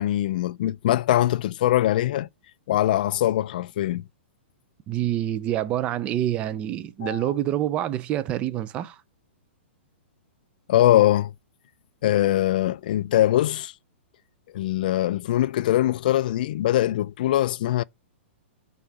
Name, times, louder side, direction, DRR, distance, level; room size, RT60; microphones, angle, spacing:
voice 1, 0.0-2.3 2.7-4.0 7.0-7.2 10.7-11.3 12.0-13.7 14.5-17.8, left 13 dB, 45° left, 0.3 m, -22 dB
voice 2, 4.9-9.0, right 12 dB, 15° right, 0.4 m, -27 dB
6.9 x 3.9 x 6.0 m
hypercardioid pair, 170°, 7 cm